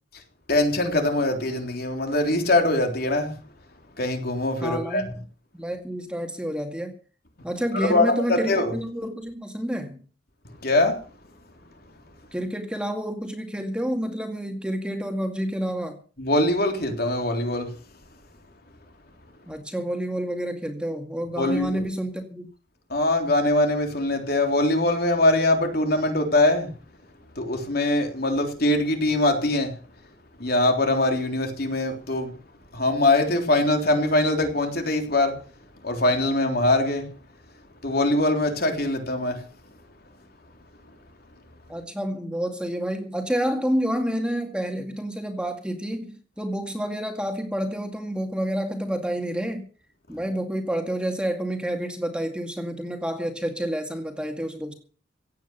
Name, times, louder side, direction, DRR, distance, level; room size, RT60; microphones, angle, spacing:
voice 1, 0.5-3.3 4.0-5.1 7.7-8.7 10.6-11.0 16.2-17.7 21.4-21.8 22.9-26.7 27.4-29.7 30.4-32.3 32.7-35.3 35.8-37.1 37.8-39.4, left 2 dB, 55° left, 3.5 m, -22 dB
voice 2, 4.6-5.0 5.5-6.9 7.4-10.0 12.3-16.0 19.5-22.5 41.7-49.7 50.1-54.7, equal, 5° right, 2.2 m, -29 dB
16.5 x 9.2 x 6.9 m
head